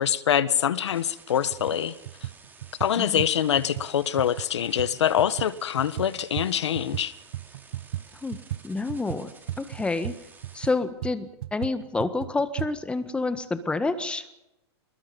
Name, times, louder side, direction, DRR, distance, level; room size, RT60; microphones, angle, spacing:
voice 1, 0.0-1.9 2.8-7.1, left 9 dB, 80° left, 1.5 m, -24 dB
sound 1, 0.9-10.7, right 4 dB, 15° right, 4.5 m, -52 dB
sound 2, 0.9-1.0 1.5-7.1 7.3-12.7, right 14 dB, 60° right, 0.9 m, -36 dB
voice 2, 8.6-9.3 9.6-10.1 10.5-14.2, left 3 dB, 5° left, 1.6 m, -28 dB
26.5 x 21.0 x 5.5 m
hypercardioid pair, 145°, 14 cm